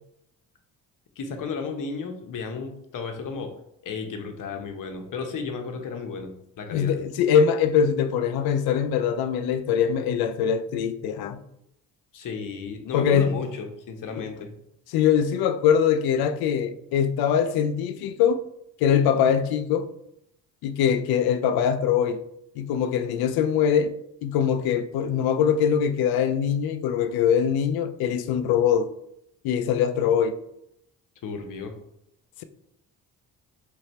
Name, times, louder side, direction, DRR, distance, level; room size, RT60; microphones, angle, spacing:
voice 1, 1.2-3.5 3.8-6.9 12.1-14.5 31.2-31.7, left 5 dB, 60° left, 0.9 m, -33 dB
voice 2, 6.7-11.4 12.9-13.4 14.2-14.3 14.9-18.4 18.8-19.9 20.6-22.2 22.6-23.9 24.2-28.9 29.4-30.3, left 8 dB, 80° left, 0.5 m, -22 dB
3.4 x 3.2 x 4.2 m
cardioid pair, 80°, 36 cm